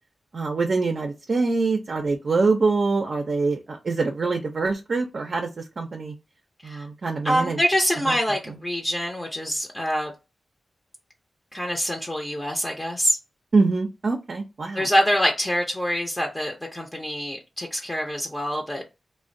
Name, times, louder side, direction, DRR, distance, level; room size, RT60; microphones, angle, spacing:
voice 1, 0.3-6.1 6.6-7.6 8.1-8.2 8.5-8.6 13.5-14.9, right 3 dB, 60° right, 0.4 m, -24 dB
voice 2, 7.2-10.1 11.5-13.2 14.7-18.9, equal, 20° left, 0.6 m, -25 dB
2.4 x 2.0 x 2.5 m
cardioid pair, 45°, 0 cm